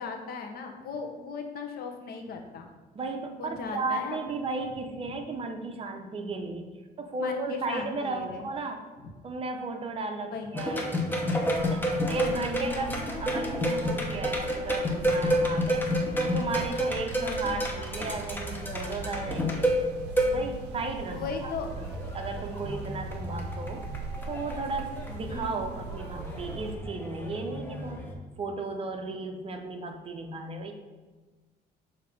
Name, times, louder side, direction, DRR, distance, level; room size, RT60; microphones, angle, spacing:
voice 1, 0.0-2.7 3.4-4.4 7.2-8.5 10.3-10.6 12.6-13.1 17.1-17.6 21.1-21.7 25.3-25.7, left 4 dB, 65° left, 4 dB, 0.9 m, -37 dB
voice 2, 2.9-6.7 7.0-8.8 9.2-11.0 11.6-15.9 16.2-19.7 20.3-23.9 24.3-28.1 28.4-30.7, right 3 dB, 35° right, 5 dB, 0.7 m, -35 dB
sound 1, 10.5-28.1, equal, 10° left, 1.0 m, -30 dB
sound 2, 11.6-26.8, right 5 dB, 80° right, 0.5 m, -41 dB
6.8 x 2.8 x 5.0 m, 1.3 s
cardioid pair, 110°, 17 cm